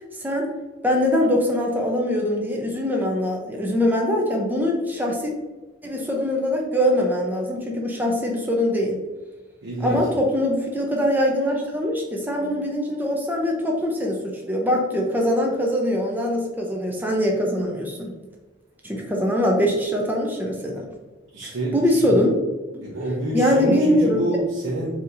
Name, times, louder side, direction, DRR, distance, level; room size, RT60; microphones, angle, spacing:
voice 1, 0.8-5.3 5.8-9.0 9.8-18.1 18.8-20.9 21.7-22.3 22.7-22.8 23.3-24.2, left 1 dB, 10° right, 0 dB, 0.5 m, -22 dB
voice 2, 9.6-10.0 21.3-22.2 22.8-25.0, right 1 dB, 80° right, -6 dB, 0.7 m, -27 dB
4.3 x 2.8 x 2.5 m, 1.3 s
head